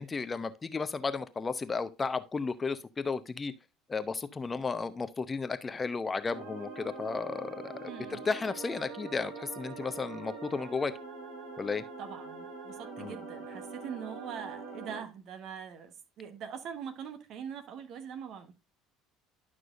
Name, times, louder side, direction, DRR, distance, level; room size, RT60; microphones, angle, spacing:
voice 1, 0.0-3.5 3.9-10.9 11.6-11.8 13.0-13.2, left 4 dB, 25° left, 0.8 m, -34 dB
sound 1, 6.3-15.0, right 4 dB, 70° right, 3.2 m, -44 dB
voice 2, 7.9-8.3 12.0-18.5, right 8 dB, 55° right, 1.3 m, -42 dB
11.5 x 6.1 x 2.5 m
figure-of-eight pair, 65°, 0 cm